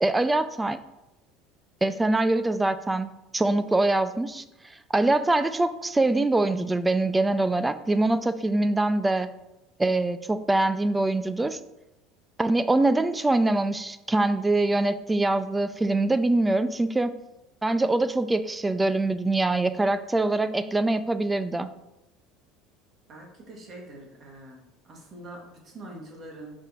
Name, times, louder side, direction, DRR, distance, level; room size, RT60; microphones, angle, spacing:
voice 1, 0.0-0.8 1.8-4.4 4.9-9.3 9.8-11.6 12.4-17.2 17.6-21.7, right 2 dB, 10° right, 12 dB, 0.4 m, -24 dB
voice 2, 23.1-26.5, right 1 dB, 35° right, 0 dB, 2.0 m, -44 dB
6.0 x 5.2 x 4.3 m, 0.94 s
cardioid pair, 135°, 0 cm